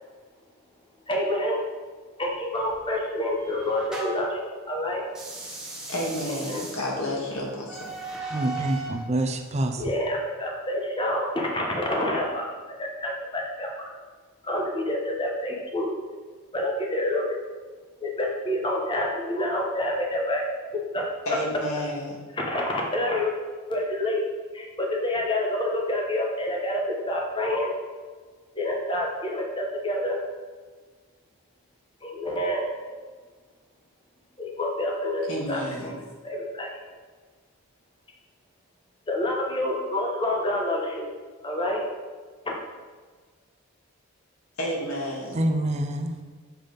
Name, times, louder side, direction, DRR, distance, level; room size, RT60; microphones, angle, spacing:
voice 1, 1.1-1.6 2.2-5.0 6.3-6.7 9.8-12.4 12.8-13.7 14.4-15.9 16.5-17.4 18.0-20.4 20.9-21.0 22.3-23.3 23.7-24.2 24.5-27.7 28.5-30.2 32.0-32.7 34.4-35.2 35.5-36.0 36.2-36.7 39.1-41.1 41.4-41.8 42.4-42.6, left 1 dB, 25° left, -1 dB, 1.2 m, -27 dB
sound 1, 2.5-4.4 5.1-9.0, right 3 dB, 5° right, 1.3 m, -38 dB
voice 2, 5.9-7.9 21.3-22.2 35.3-35.9 44.6-45.4, left 1 dB, 80° left, -3 dB, 2.1 m, -30 dB
voice 3, 8.3-9.8 45.3-46.1, right 1 dB, 30° right, 5 dB, 0.6 m, -26 dB
7.3 x 5.6 x 5.2 m, 1.5 s
head